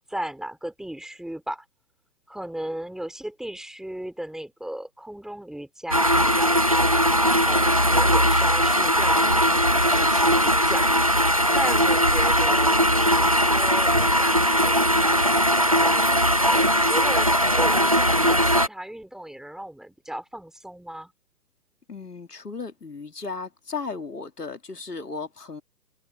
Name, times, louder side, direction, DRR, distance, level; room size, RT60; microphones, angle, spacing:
voice 1, 0.0-1.6 2.3-10.9 11.3-16.1 16.5-21.1, right 1 dB, ahead, 3.3 m, -36 dB
sound 1, 5.9-18.7, equal, 25° right, 0.4 m, -20 dB
voice 2, 21.9-25.6, left 4 dB, 75° left, 2.4 m, -35 dB
figure-of-eight pair, 135°, 47 cm